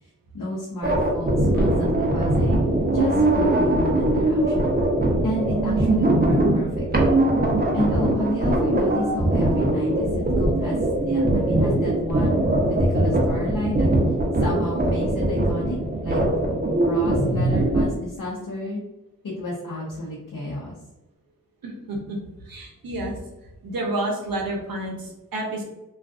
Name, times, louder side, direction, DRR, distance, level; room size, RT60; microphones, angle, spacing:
voice 1, 0.0-4.7 5.2-7.1 7.7-12.4 12.7-13.9 14.4-15.8 16.0-16.2 16.8-18.8 19.2-20.8, left 1 dB, 70° left, -5 dB, 0.7 m, -31 dB
sound 1, 0.8-17.8, right 1 dB, 30° right, 0.6 m, -21 dB
voice 2, 21.6-22.2 22.4-23.2 23.6-25.6, right 1 dB, 80° right, 0 dB, 0.7 m, -29 dB
2.4 x 2.4 x 2.4 m, 1.0 s
cardioid pair, 50°, 34 cm